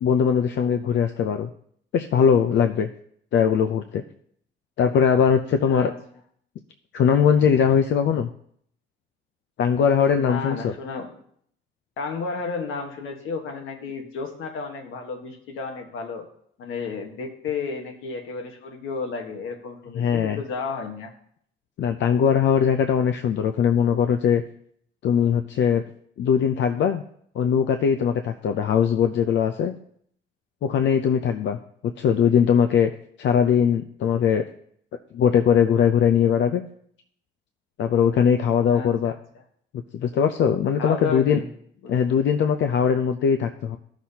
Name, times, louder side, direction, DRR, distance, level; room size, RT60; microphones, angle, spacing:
voice 1, 0.0-1.5 1.9-2.9 3.3-4.0 4.8-5.9 6.9-8.3 9.6-10.7 19.9-20.4 21.8-24.4 25.0-25.8 26.2-27.0 27.4-29.7 30.6-31.6 31.8-32.9 33.2-34.4 35.1-36.6 37.8-39.1 39.9-41.4 41.9-43.8, left 7 dB, 65° left, 7 dB, 0.5 m, -20 dB
voice 2, 10.2-11.1 12.0-16.3 16.6-21.1 38.7-39.1 40.8-41.5 41.8-42.0, left 4 dB, 85° left, 3 dB, 1.4 m, -32 dB
13.0 x 6.0 x 2.8 m, 0.65 s
cardioid pair, 90°, 20 cm